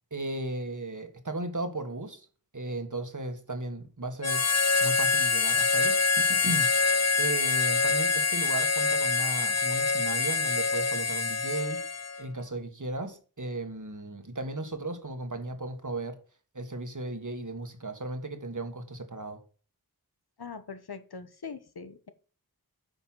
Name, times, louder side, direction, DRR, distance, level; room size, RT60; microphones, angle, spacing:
voice 1, 0.1-2.3 2.5-4.5 4.8-6.7 7.2-11.8 12.2-16.2 16.5-19.4, right 2 dB, 55° right, 1.7 m, -35 dB
Harmonica, 4.2-12.3, left 4 dB, 45° left, 0.6 m, -25 dB
voice 2, 20.4-22.1, left 5 dB, 90° left, 1.1 m, -42 dB
9.3 x 5.6 x 5.7 m
wide cardioid pair, 45°, 37 cm